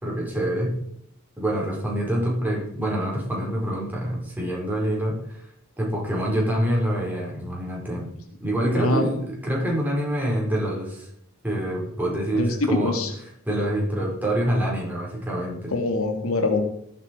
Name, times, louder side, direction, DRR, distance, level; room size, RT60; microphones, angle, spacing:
voice 1, 0.0-0.8 1.4-5.4 5.8-8.1 8.4-11.1 11.4-13.0 13.4-15.7, right 1 dB, 10° right, -3 dB, 5.0 m, -26 dB
voice 2, 8.6-9.1 12.3-13.1 15.7-16.6, left 2 dB, 80° left, 6 dB, 1.9 m, -24 dB
18.0 x 8.2 x 4.7 m, 0.73 s
head